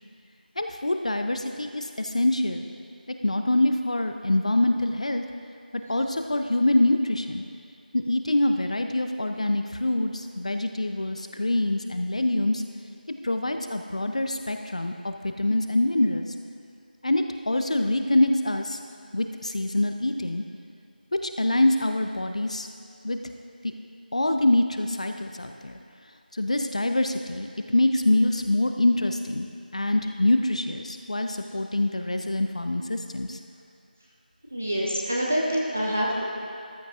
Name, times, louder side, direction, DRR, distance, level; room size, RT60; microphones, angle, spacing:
voice 1, 0.6-2.7 3.1-5.2 5.9-7.4 7.9-12.6 13.2-16.3 17.0-18.8 19.1-20.4 21.2-22.7 23.0-23.2 24.1-25.8 26.3-29.5 29.7-33.4, left 1 dB, 45° left, 6 dB, 0.6 m, -25 dB
voice 2, 34.5-36.2, equal, 10° right, -4 dB, 0.4 m, -26 dB
14.0 x 12.0 x 2.4 m, 2.5 s
figure-of-eight pair, 175°, 5 cm